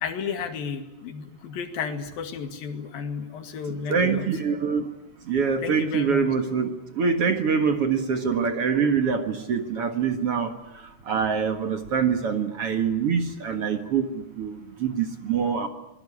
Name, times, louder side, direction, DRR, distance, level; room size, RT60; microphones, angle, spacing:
voice 1, 0.0-4.3 5.6-6.3, left 6 dB, 65° left, 7 dB, 3.8 m, -33 dB
voice 2, 3.9-4.9 5.3-10.5 11.1-15.7, right 6 dB, 50° right, 7 dB, 1.9 m, -25 dB
26.5 x 21.5 x 9.8 m, 0.93 s
omnidirectional pair, 4.6 m